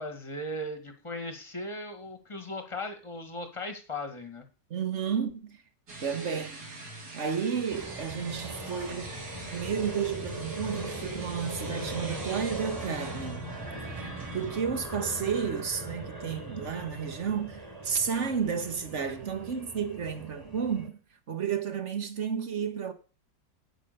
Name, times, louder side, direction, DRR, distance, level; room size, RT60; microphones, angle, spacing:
voice 1, 0.0-4.4, left 1 dB, 20° left, 1.8 m, -37 dB
voice 2, 4.7-5.6 6.0-6.6 7.1-9.1 9.5-13.6 13.9-21.0 21.3-22.9, right 7 dB, 45° right, 1.5 m, -32 dB
sound 1, 5.9-14.6, right 2 dB, 65° right, 3.6 m, -44 dB
sound 2, 7.7-20.9, right 1 dB, 10° right, 3.2 m, -40 dB
9.2 x 9.1 x 6.7 m
omnidirectional pair, 1.9 m